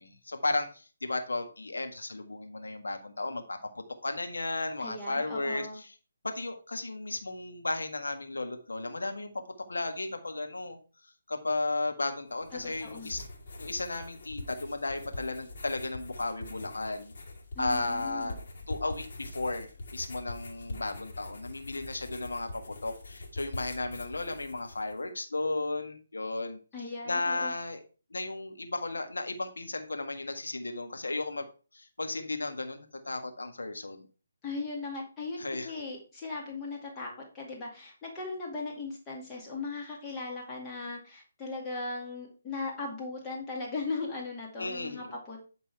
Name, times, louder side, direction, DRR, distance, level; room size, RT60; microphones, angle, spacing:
voice 1, 0.0-5.9 6.2-9.3 9.7-10.8 11.3-13.2 13.6-17.1 17.6-18.4 18.7-26.6 27.0-27.8 28.1-31.5 31.7-34.0 35.4-35.7 44.6-45.1, left 2 dB, 80° left, 6 dB, 1.6 m, -34 dB
voice 2, 4.8-5.8 12.5-13.1 17.6-18.4 26.7-27.5 34.4-45.4, left 3 dB, 15° left, -3 dB, 2.1 m, -38 dB
sound 1, 12.3-25.0, left 2 dB, 55° left, 2.5 m, -44 dB
11.0 x 4.0 x 4.6 m, 0.36 s
figure-of-eight pair, 145°, 0 cm